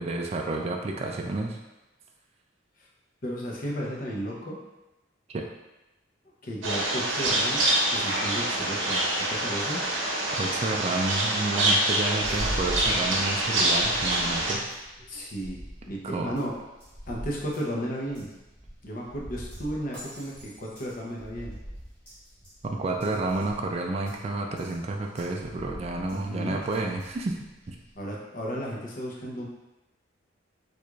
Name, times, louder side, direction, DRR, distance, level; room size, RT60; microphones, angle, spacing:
voice 1, 0.0-1.6 5.3-5.4 10.4-14.8 16.0-16.3 22.6-27.4 27.7-27.8, right 2 dB, 35° right, 1 dB, 0.3 m, -30 dB
voice 2, 3.2-4.6 6.4-7.6 7.9-9.8 15.1-16.5 17.1-18.3 18.8-21.6 26.1-26.6 27.9-29.5, equal, 45° left, -3 dB, 0.7 m, -34 dB
sound 1, 6.6-14.6, right 1 dB, 85° right, 0.7 m, -26 dB
sound 2, 12.2-28.0, equal, 10° left, 1.2 m, -42 dB
4.6 x 2.5 x 2.3 m, 1.0 s
head